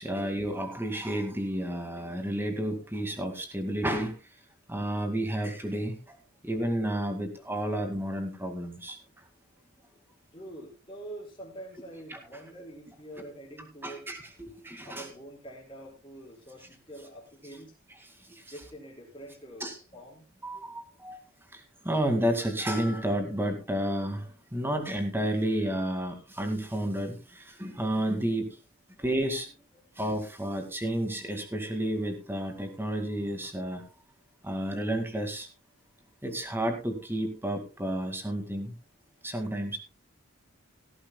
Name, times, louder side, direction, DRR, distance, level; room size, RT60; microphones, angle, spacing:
voice 1, 0.0-4.1 4.7-6.2 6.4-9.0 12.1-12.2 13.2-13.3 13.8-15.1 18.2-18.4 19.6-19.8 20.4-21.2 21.5-28.6 29.0-29.6 30.0-33.8 34.4-35.5 36.2-38.8 39.2-39.8, right 1 dB, 10° right, 2.2 m, -31 dB
voice 2, 10.3-14.1 14.8-17.8 18.5-20.2, right 1 dB, 25° left, 5.2 m, -45 dB
17.5 x 13.5 x 2.3 m
head